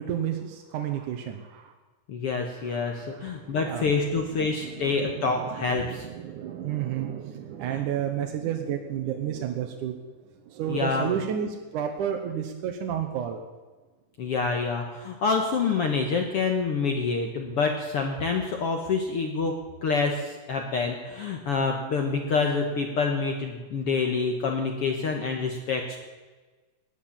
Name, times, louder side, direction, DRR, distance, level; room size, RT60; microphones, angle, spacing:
voice 1, 0.0-1.7 2.7-3.1 3.6-3.9 4.6-10.0 10.5-13.4, right 9 dB, 70° right, 4 dB, 2.2 m, -31 dB
voice 2, 2.1-6.1 7.7-7.8 10.7-11.1 14.2-26.0, left 4 dB, 65° left, 3 dB, 1.4 m, -27 dB
17.5 x 10.5 x 7.3 m, 1.3 s
omnidirectional pair, 4.3 m